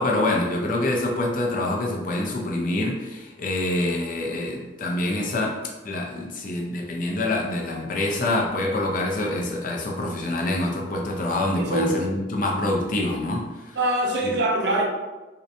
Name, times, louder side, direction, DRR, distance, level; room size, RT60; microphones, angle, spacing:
voice 1, 0.0-13.8 14.2-14.3, left 2 dB, 50° left, -1 dB, 0.5 m, -26 dB
voice 2, 11.6-12.2 13.8-14.8, right 1 dB, 65° right, 0 dB, 0.5 m, -23 dB
2.8 x 2.1 x 2.6 m, 1.1 s
head